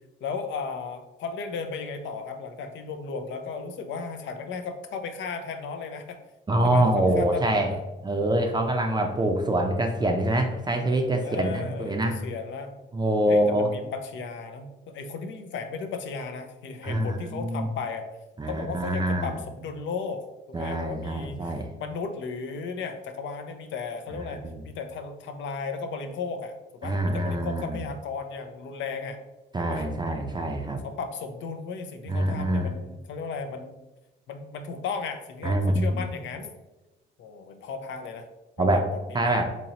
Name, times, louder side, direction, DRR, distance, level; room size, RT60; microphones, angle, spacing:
voice 1, 0.2-6.2 6.6-7.8 8.1-8.5 11.2-12.7 13.3-18.1 18.5-20.2 20.5-26.5 26.8-29.2 29.6-29.8 30.8-33.8 34.3-36.5 37.2-38.3 38.6-39.4, left 5 dB, 70° left, 7 dB, 0.5 m, -35 dB
voice 2, 6.5-7.7 8.0-12.2 12.9-13.7 16.8-17.7 18.4-19.4 20.5-21.7 24.3-24.6 26.8-27.8 29.5-30.8 32.1-32.7 35.4-36.1 38.6-38.9 39.1-39.4, right 1 dB, 20° right, 3 dB, 0.5 m, -25 dB
4.1 x 2.9 x 2.9 m, 1.0 s
cardioid pair, 90°, 20 cm